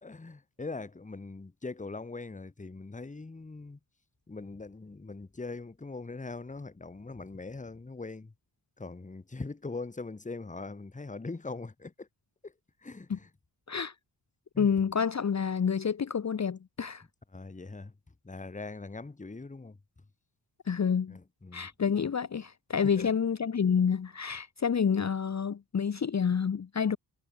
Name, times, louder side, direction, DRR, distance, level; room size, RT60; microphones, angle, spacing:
voice 1, 0.0-3.8 4.3-8.3 8.8-11.9 12.8-13.1 14.5-14.7 17.3-17.9 18.2-19.7 21.1-21.7, left 3 dB, 15° left, 1.2 m, -41 dB
voice 2, 14.6-17.0 20.7-21.2 21.5-27.0, left 6 dB, 35° left, 1.0 m, -28 dB
supercardioid pair, 45°, 45 cm